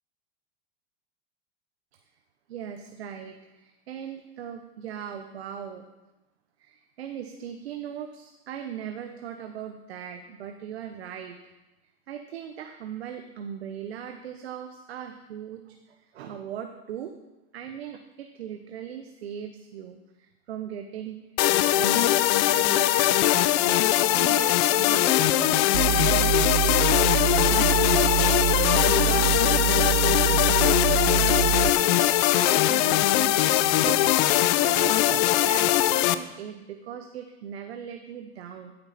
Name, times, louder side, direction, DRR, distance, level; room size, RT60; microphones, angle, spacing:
voice 1, 2.5-5.9 6.6-11.4 12.1-17.1 17.5-21.2 21.7-26.6 27.6-28.4 28.9-30.8 31.2-34.2 34.6-38.7, right 8 dB, 90° right, 6 dB, 0.9 m, -39 dB
sound 1, 21.4-36.1, left 14 dB, 50° left, 0.6 m, -21 dB
sound 2, 25.7-31.7, right 15 dB, 75° right, 0.6 m, -25 dB
14.0 x 8.8 x 4.2 m, 1.1 s
supercardioid pair, 115°, 31 cm